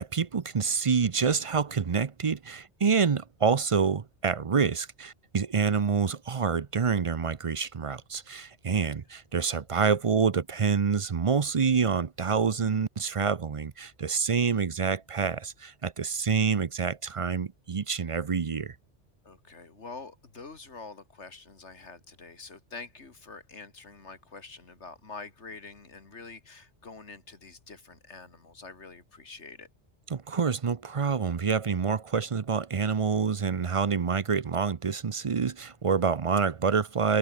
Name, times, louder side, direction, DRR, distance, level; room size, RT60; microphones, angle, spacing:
voice 1, 0.0-18.7 30.1-37.2, right 6 dB, 35° right, 0.6 m, -27 dB
voice 2, 19.2-29.7, left 4 dB, 85° left, 2.7 m, -46 dB
omnidirectional pair, 1.2 m